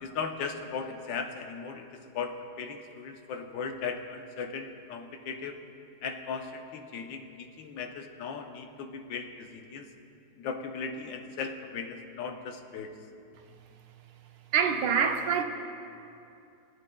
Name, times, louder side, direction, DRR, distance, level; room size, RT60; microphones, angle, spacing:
voice 1, 0.0-5.6 6.0-9.9 10.4-12.9, left 5 dB, 85° left, 4 dB, 1.4 m, -37 dB
voice 2, 14.5-15.4, right 7 dB, 80° right, 5 dB, 1.4 m, -25 dB
20.0 x 8.6 x 2.2 m, 2.6 s
omnidirectional pair, 2.0 m